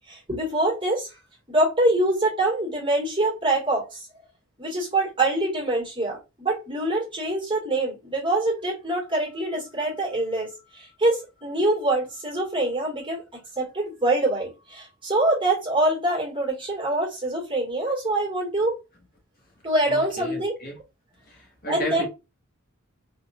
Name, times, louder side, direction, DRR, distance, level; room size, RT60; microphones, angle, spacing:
voice 1, 0.1-1.2 1.5-4.1 4.6-13.2 13.6-18.7 19.6-20.5 21.7-22.0, right 1 dB, 25° right, 2.1 m, -25 dB
voice 2, 19.9-20.8 21.2-22.0, equal, 45° left, 1.5 m, -34 dB
3.9 x 3.3 x 2.5 m
head